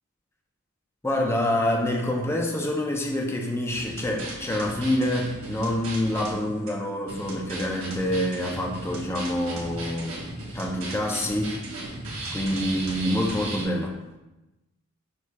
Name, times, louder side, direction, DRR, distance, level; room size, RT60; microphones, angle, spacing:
voice 1, 1.0-10.2 10.5-11.6 12.3-14.0, left 1 dB, 10° left, 1 dB, 0.5 m, -26 dB
sound 1, 3.7-6.3 6.7-6.8 7.1-13.6, right 1 dB, 70° right, 1.2 m, -36 dB
6.4 x 2.9 x 2.2 m, 1.0 s
head